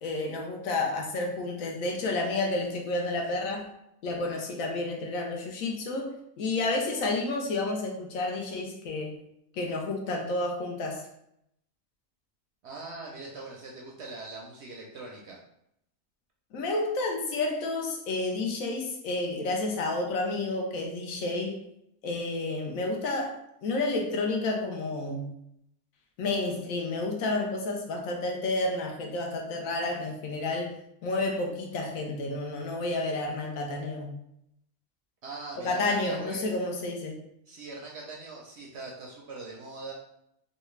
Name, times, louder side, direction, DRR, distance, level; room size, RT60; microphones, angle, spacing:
voice 1, 0.0-3.7 4.0-9.2 9.5-11.0 16.5-21.6 22.0-25.3 26.2-30.8 31.0-34.1 35.6-37.2, left 2 dB, 70° left, 1 dB, 1.0 m, -30 dB
voice 2, 12.6-15.4 35.2-36.4 37.5-39.9, right 3 dB, 65° right, -2 dB, 0.7 m, -42 dB
3.2 x 2.3 x 3.1 m, 0.77 s
omnidirectional pair, 1.5 m